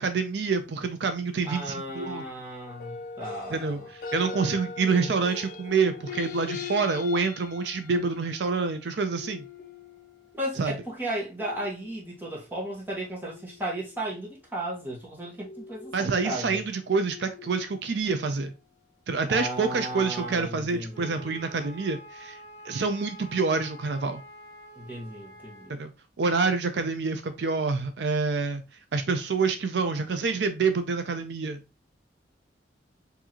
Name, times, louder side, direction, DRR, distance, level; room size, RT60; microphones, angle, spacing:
voice 1, 0.0-2.2 3.5-9.4 10.6-10.7 15.9-18.5 19.1-22.4 22.6-24.2 25.7-25.9 26.2-28.6 28.9-31.6, right 4 dB, 70° right, 0.5 m, -27 dB
voice 2, 1.4-3.9 10.3-16.6 19.3-21.3 24.8-25.8, right 1 dB, 10° right, 1.3 m, -35 dB
sound 1, 2.7-10.4 11.4-12.2 13.2-14.2 15.4-18.3 19.1-20.5 20.8-21.3, left 5 dB, 50° left, 0.6 m, -42 dB
Wind instrument woodwind instrument, 20.9-25.7, right 1 dB, 15° left, 1.2 m, -47 dB
4.7 x 2.7 x 2.9 m
head